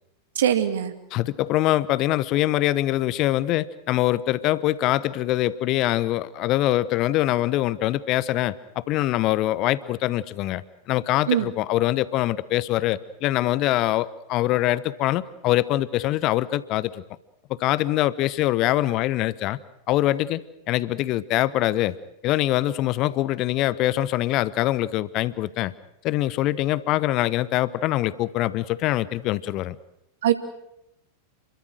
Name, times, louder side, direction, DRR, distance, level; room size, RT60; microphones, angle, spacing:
voice 1, 0.4-0.9 11.3-11.5 30.2-30.3, right 10 dB, 60° right, 8 dB, 2.5 m, -21 dB
voice 2, 1.1-10.6 10.9-17.0 17.5-19.6 19.9-22.0 22.2-25.7 26.0-29.7, left 15 dB, 40° left, 18 dB, 1.0 m, -23 dB
29.5 x 23.0 x 6.5 m, 0.83 s
figure-of-eight pair, 90°, 0 cm